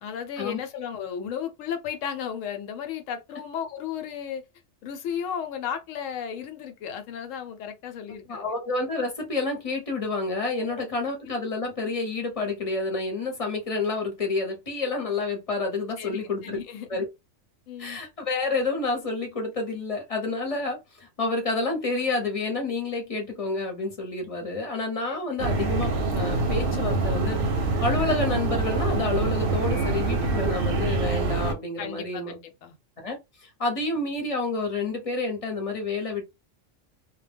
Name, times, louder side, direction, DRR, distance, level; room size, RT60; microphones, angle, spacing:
voice 1, 0.0-4.4 4.8-8.5 10.6-10.8 16.0-17.0 17.7-18.0 31.8-32.7, left 8 dB, 80° left, 1.0 m, -34 dB
voice 2, 8.3-16.6 16.9-17.0 17.8-27.4 27.8-32.4 33.0-36.2, left 3 dB, 35° left, 0.7 m, -29 dB
sound 1, 25.4-31.5, right 3 dB, 55° right, 0.7 m, -25 dB
2.1 x 2.1 x 3.3 m
omnidirectional pair, 1.3 m